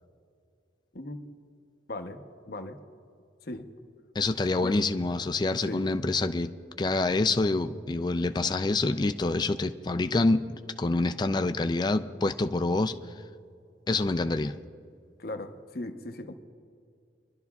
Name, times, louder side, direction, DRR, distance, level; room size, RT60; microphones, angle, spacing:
voice 1, 0.9-1.3 1.9-2.8 3.4-3.7 4.6-4.8 5.7-5.8 15.2-16.3, left 2 dB, 55° left, 6 dB, 0.9 m, -38 dB
voice 2, 4.2-6.5 6.8-12.9 13.9-14.5, left 2 dB, 25° left, 9 dB, 0.4 m, -26 dB
26.0 x 12.0 x 2.4 m, 2.3 s
head